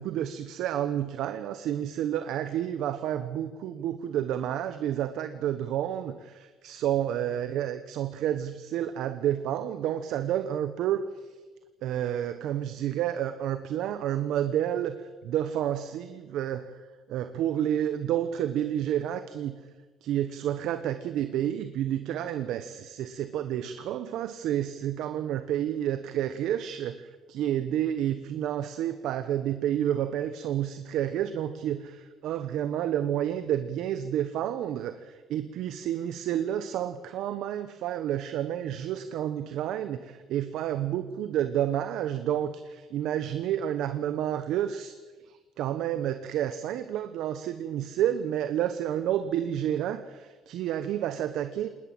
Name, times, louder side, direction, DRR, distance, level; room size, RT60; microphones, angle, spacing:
voice 1, 0.0-11.1 11.8-16.7 17.1-19.6 20.0-44.9 45.3-51.7, right 11 dB, 80° right, 11 dB, 1.0 m, -30 dB
20.0 x 19.5 x 7.8 m, 1.3 s
cardioid pair, 100°, 0 cm